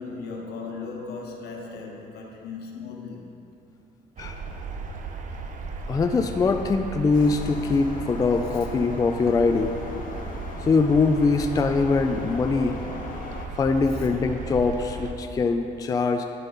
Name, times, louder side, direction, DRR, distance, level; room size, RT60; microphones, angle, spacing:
voice 1, 0.0-3.3 13.9-14.1, left 4 dB, 75° left, 0 dB, 1.3 m, -37 dB
sound 1, 4.2-15.1, right 3 dB, 50° right, 0.7 m, -36 dB
voice 2, 5.9-9.8 10.6-12.8 13.6-16.2, left 4 dB, 20° left, 5 dB, 0.4 m, -22 dB
sound 2, 7.1-13.5, left 4 dB, 55° left, 0.7 m, -40 dB
10.5 x 5.4 x 3.9 m, 2.8 s
cardioid pair, 110°, 17 cm